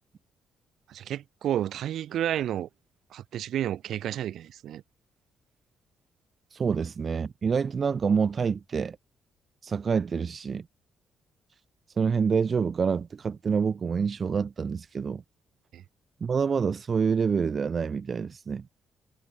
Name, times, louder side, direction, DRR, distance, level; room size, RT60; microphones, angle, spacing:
voice 1, 0.9-2.7 3.1-4.8 15.7-15.8, right 11 dB, 75° right, 4.8 m, -31 dB
voice 2, 6.5-9.0 9.6-10.6 12.0-15.2 16.2-18.6, right 6 dB, 45° right, 0.8 m, -27 dB
cardioid pair, 90°, 0 cm